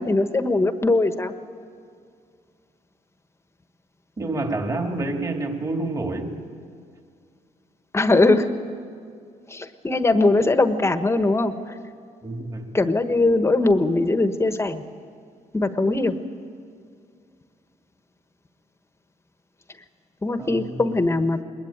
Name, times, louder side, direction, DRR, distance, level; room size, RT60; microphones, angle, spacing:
voice 1, 0.0-1.3 7.9-8.5 9.5-11.8 12.7-14.8 15.5-16.2 20.2-21.4, left 2 dB, 20° left, 9 dB, 1.2 m, -20 dB
voice 2, 4.2-6.4 12.2-12.8 20.4-21.0, right 2 dB, 25° right, 3 dB, 2.5 m, -28 dB
21.0 x 20.5 x 8.9 m, 2.2 s
cardioid pair, 100°, 14 cm